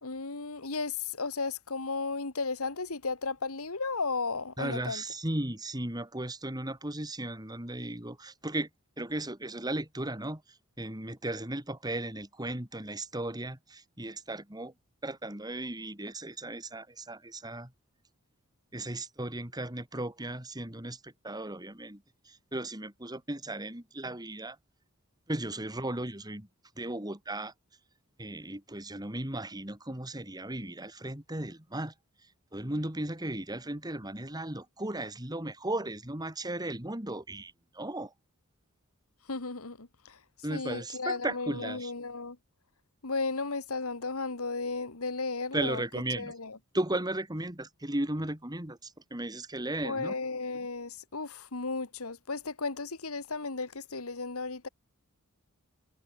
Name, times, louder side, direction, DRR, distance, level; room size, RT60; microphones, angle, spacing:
voice 1, 0.0-5.0 39.3-40.2 40.5-42.4 43.0-45.8 46.2-46.6 49.8-54.7, left 3 dB, 75° left, 2.0 m, -34 dB
voice 2, 4.6-8.7 9.0-10.4 10.8-14.7 15.0-17.7 18.7-22.0 22.3-24.6 25.3-26.5 26.8-27.5 28.2-31.9 32.5-38.1 40.4-41.9 45.5-46.3 46.7-50.1, right 1 dB, 20° right, 3.1 m, -36 dB
head